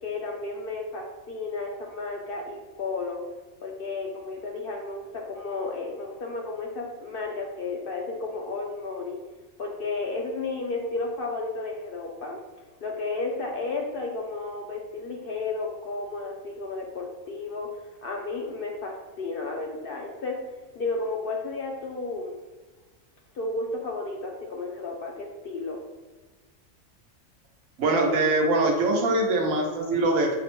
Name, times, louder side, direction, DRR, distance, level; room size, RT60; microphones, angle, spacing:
voice 1, 0.0-3.2 3.6-9.2 9.6-12.4 12.8-17.7 18.0-20.4 20.7-22.4 23.3-25.8, left 3 dB, 60° left, 0 dB, 0.6 m, -33 dB
voice 2, 27.8-30.4, right 2 dB, 85° right, 1 dB, 1.1 m, -23 dB
5.6 x 2.0 x 3.0 m, 1.3 s
omnidirectional pair, 1.3 m